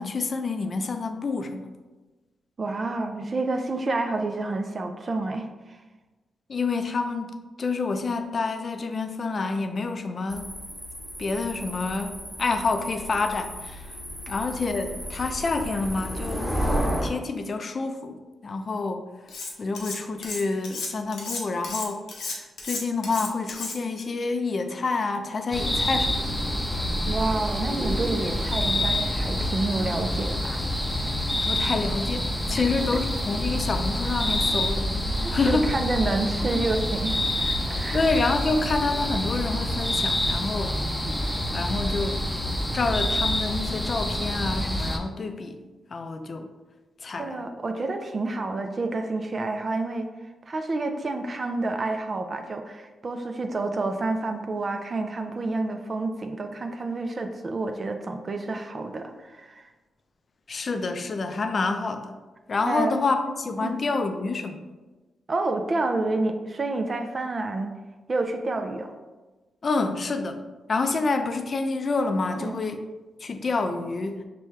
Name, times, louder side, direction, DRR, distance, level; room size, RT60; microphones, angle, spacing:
voice 1, 0.0-1.7 6.5-10.5 11.2-13.9 14.3-16.6 17.0-18.2 18.4-19.0 19.6-26.2 31.4-35.7 37.9-40.8 41.5-42.2 42.7-45.6 45.9-46.5 47.0-47.4 60.5-62.2 62.5-64.6 69.6-70.4 70.7-72.8 73.2-74.2, left 3 dB, 50° left, 7 dB, 0.4 m, -28 dB
voice 2, 2.6-5.8 27.1-30.6 35.2-38.0 47.2-50.1 50.5-59.7 62.7-63.0 63.6-63.8 65.3-67.7 68.1-68.9 72.3-72.6, right 2 dB, 45° right, 5 dB, 0.4 m, -29 dB
sound 1, 10.3-17.1, equal, 5° right, 1.3 m, -32 dB
Cutlery silverware, 19.3-20.0 20.2-24.0, left 3 dB, 80° left, 0.7 m, -33 dB
sound 2, 25.5-45.0, left 1 dB, 15° left, 0.6 m, -27 dB
5.8 x 2.2 x 3.2 m, 1.2 s
cardioid pair, 60°, 0 cm